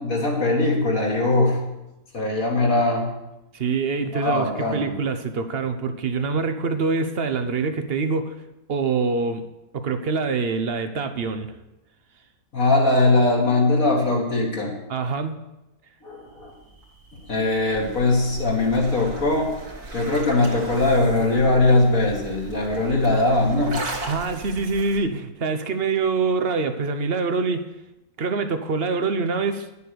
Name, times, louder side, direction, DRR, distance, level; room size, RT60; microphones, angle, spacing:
voice 1, 0.0-1.6 2.1-3.1 4.1-5.0 12.5-14.7 16.0-16.5 17.3-19.5 19.9-23.8, left 2 dB, 60° left, -2 dB, 2.4 m, -20 dB
voice 2, 3.5-8.4 8.7-9.5 9.7-11.6 14.9-15.4 24.1-27.6 28.2-29.7, right 4 dB, 50° right, 9 dB, 0.9 m, -25 dB
sound 1, 16.3-25.0, right 2 dB, 80° right, 2.3 m, -37 dB
11.0 x 6.9 x 6.7 m, 0.96 s
omnidirectional pair, 1.6 m